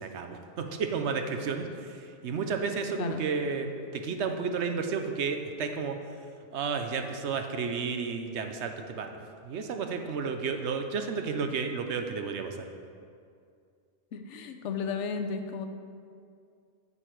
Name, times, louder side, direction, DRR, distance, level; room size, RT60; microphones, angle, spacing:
voice 1, 0.0-6.0 6.5-12.7, right 5 dB, 80° right, 5 dB, 1.0 m, -32 dB
voice 2, 14.1-15.7, left 5 dB, 85° left, 7 dB, 1.0 m, -34 dB
8.3 x 7.1 x 4.5 m, 2.3 s
omnidirectional pair, 1.2 m